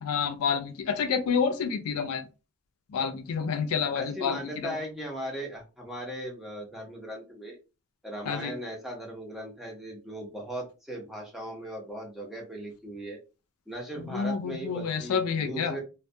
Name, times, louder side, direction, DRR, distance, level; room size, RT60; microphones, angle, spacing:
voice 1, 0.0-2.3 2.9-4.8 8.3-8.5 14.1-15.8, left 6 dB, 85° left, 8 dB, 0.4 m, -29 dB
voice 2, 3.9-7.6 8.0-13.2 13.7-15.8, right 1 dB, ahead, -2 dB, 0.6 m, -38 dB
2.2 x 2.2 x 2.6 m, 0.30 s
head